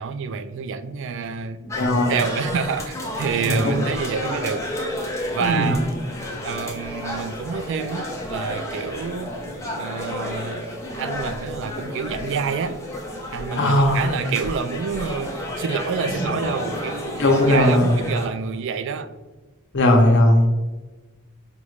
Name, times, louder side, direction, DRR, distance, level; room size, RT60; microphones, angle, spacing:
voice 1, 0.0-1.6 2.1-4.7 5.3-5.8 6.4-9.4 9.7-12.8 13.3-19.1, right 6 dB, 60° right, 0.3 m, -28 dB
sound 1, 1.7-18.3, left 1 dB, 15° left, 0.6 m, -31 dB
voice 2, 1.8-2.2 3.3-3.7 5.4-5.8 13.5-14.0 16.1-16.3 17.2-18.0 19.7-20.5, left 1 dB, 60° left, 0.7 m, -18 dB
5.2 x 2.4 x 3.1 m
head